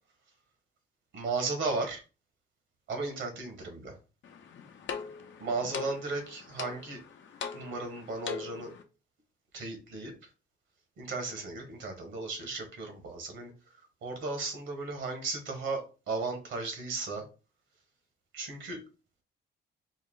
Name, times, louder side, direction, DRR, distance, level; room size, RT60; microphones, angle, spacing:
voice 1, 1.1-2.0 2.9-4.0 5.4-7.0 7.5-8.7 9.5-10.1 11.0-13.5 14.0-17.2 18.3-18.8, right 3 dB, 70° right, 4 dB, 1.5 m, -35 dB
sound 1, 4.2-8.8, left 6 dB, 65° left, 0.7 m, -41 dB
4.5 x 2.1 x 3.8 m, 0.33 s
cardioid pair, 90°, 20 cm